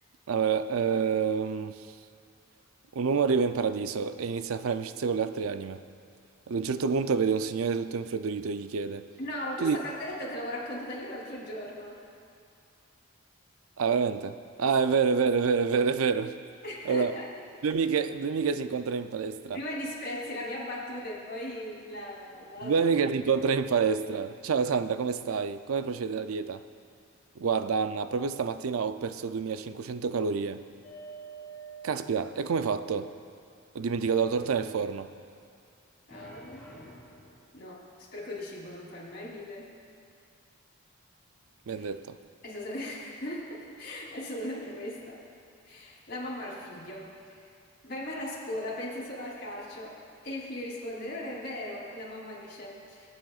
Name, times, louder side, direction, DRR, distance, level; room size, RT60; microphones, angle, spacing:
voice 1, 0.3-1.9 2.9-5.8 6.5-9.1 9.6-9.8 13.8-16.3 16.8-17.2 17.6-19.6 22.6-26.6 27.4-30.6 31.8-33.1 33.7-35.1 41.7-42.2, right 5 dB, 85° right, 11 dB, 0.5 m, -28 dB
voice 2, 9.2-12.0 16.6-17.3 19.5-22.8 36.1-36.7 37.5-37.8 38.1-39.7 41.8-41.9 42.4-45.2 45.6-47.1 47.3-47.5 47.8-50.0 50.2-53.1, left 1 dB, 50° left, -5 dB, 3.3 m, -38 dB
sound 1, 30.8-32.8 33.9-35.2 36.1-37.5, right 3 dB, 5° left, 3.4 m, -48 dB
25.5 x 8.7 x 2.4 m, 2.4 s
head